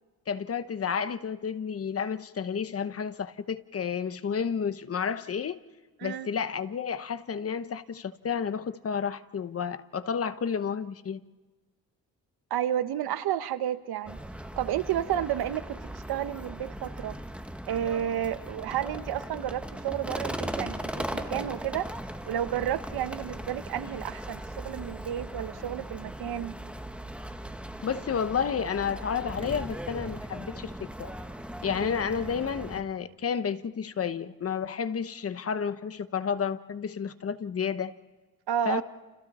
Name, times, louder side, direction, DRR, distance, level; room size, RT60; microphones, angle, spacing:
voice 1, 0.3-5.6 6.0-11.2 27.8-31.1 31.6-37.9 38.7-38.8, left 6 dB, 40° left, 0.9 m, -31 dB
voice 2, 6.0-6.3 12.5-14.2 14.6-15.8 16.1-17.2 17.7-21.9 22.3-26.6 38.5-38.8, right 11 dB, 85° right, 1.0 m, -31 dB
sound 1, 14.1-32.8, right 1 dB, 5° right, 1.3 m, -38 dB
30.0 x 29.5 x 4.2 m
cardioid pair, 125°, 37 cm